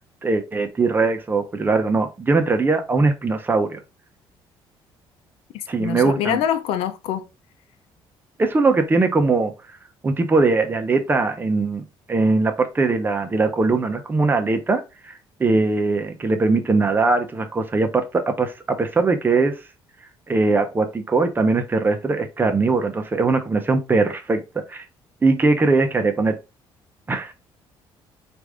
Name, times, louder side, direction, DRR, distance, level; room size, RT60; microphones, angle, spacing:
voice 1, 0.2-3.8 5.7-6.4 8.4-9.5 10.0-11.8 12.1-15.1 15.4-19.6 20.3-24.4 24.7-24.8 25.2-26.4 27.1-27.3, right 3 dB, 20° right, 0.7 m, -20 dB
voice 2, 5.5-7.3, left 9 dB, 90° left, 0.6 m, -25 dB
4.8 x 2.6 x 3.5 m
cardioid pair, 125°, 10 cm